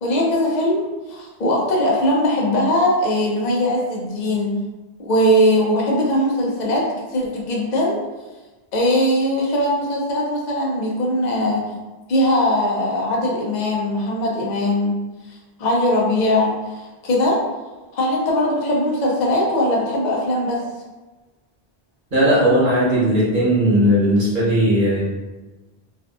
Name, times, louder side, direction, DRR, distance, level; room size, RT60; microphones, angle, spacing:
voice 1, 0.0-4.6 5.0-6.8 7.1-8.0 8.7-11.7 12.1-14.9 15.6-17.4 17.9-20.6, left 1 dB, 50° left, -2 dB, 0.6 m, -20 dB
voice 2, 22.1-25.0, equal, 55° right, -9 dB, 1.1 m, -17 dB
2.6 x 2.4 x 2.3 m, 1.2 s
omnidirectional pair, 1.0 m